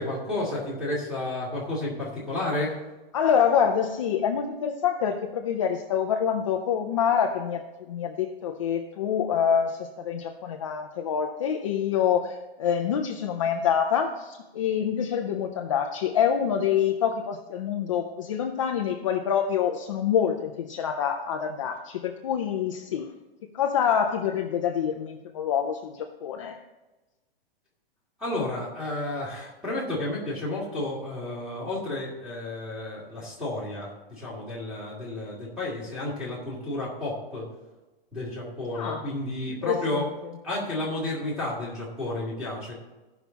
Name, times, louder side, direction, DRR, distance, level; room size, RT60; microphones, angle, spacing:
voice 1, 0.0-2.8 28.2-37.5 38.1-40.0 40.4-42.7, left 1 dB, 5° right, -7 dB, 2.4 m, -31 dB
voice 2, 3.1-23.1 23.5-26.6 38.7-39.1 39.6-40.1, left 8 dB, 35° left, 3 dB, 0.5 m, -26 dB
14.5 x 6.0 x 4.0 m, 1.1 s
hypercardioid pair, 180°, 30 cm